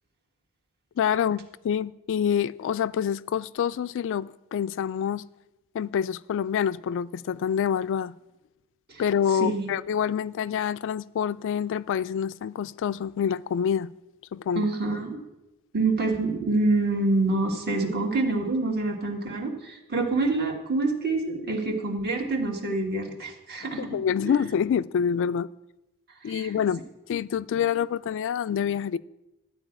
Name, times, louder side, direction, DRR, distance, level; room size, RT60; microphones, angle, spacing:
voice 1, 1.0-5.2 5.7-8.1 9.0-13.9 14.3-14.7 23.8-25.5 26.2-26.8 27.1-29.0, left 8 dB, 60° left, 0.3 m, -27 dB
voice 2, 9.3-9.7 14.5-15.2 15.7-23.9 24.2-24.4 26.2-26.6, right 2 dB, 45° right, 1.6 m, -26 dB
12.5 x 4.8 x 8.7 m
head